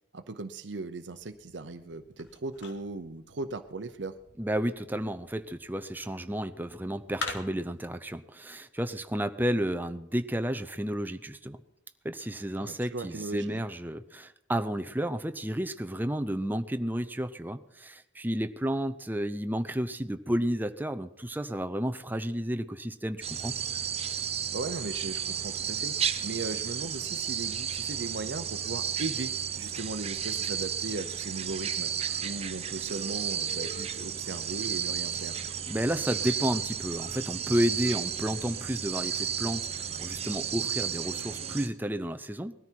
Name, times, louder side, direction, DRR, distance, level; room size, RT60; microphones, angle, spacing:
voice 1, 0.1-4.2 12.6-13.6 24.5-26.0 26.2-31.9 32.2-35.4, right 3 dB, 75° right, 9 dB, 0.8 m, -37 dB
sound 1, 1.0-7.9, left 3 dB, 85° left, 2.3 m, -45 dB
voice 2, 4.4-11.6 12.0-23.6 35.7-42.5, equal, 10° right, 9 dB, 0.6 m, -32 dB
sound 2, 23.2-41.7, right 8 dB, 35° right, 1.0 m, -33 dB
19.5 x 13.5 x 4.6 m, 0.82 s
head